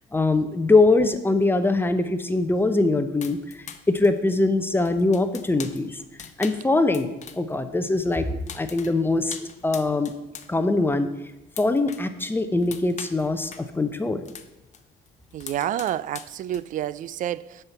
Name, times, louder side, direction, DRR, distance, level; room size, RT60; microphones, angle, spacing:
voice 1, 0.1-3.4 3.9-6.0 6.4-9.4 9.6-10.1 10.5-11.1 11.6-14.2, left 2 dB, 15° left, 0.7 m, -22 dB
sound 1, 3.2-7.6 7.8-10.5 10.8-12.1 12.4-14.8 15.1-16.9, left 7 dB, 45° left, 0.8 m, -42 dB
voice 2, 15.3-17.6, right 11 dB, 50° right, 0.4 m, -29 dB
7.8 x 5.7 x 6.9 m
cardioid pair, 110°, 17 cm